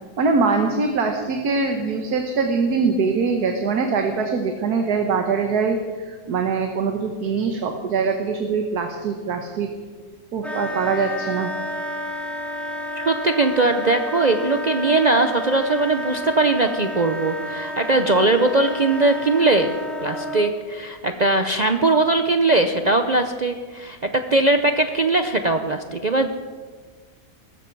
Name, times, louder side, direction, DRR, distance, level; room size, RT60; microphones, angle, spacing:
voice 1, 0.2-5.8 6.1-9.7 10.3-11.5, right 4 dB, 75° right, 4 dB, 1.7 m, -23 dB
Wind instrument woodwind instrument, 10.4-20.5, left 1 dB, ahead, 2.1 m, -30 dB
voice 2, 13.0-19.7 20.0-26.4, right 2 dB, 50° right, 6 dB, 0.5 m, -20 dB
19.0 x 14.5 x 4.6 m, 1.5 s
omnidirectional pair, 1.7 m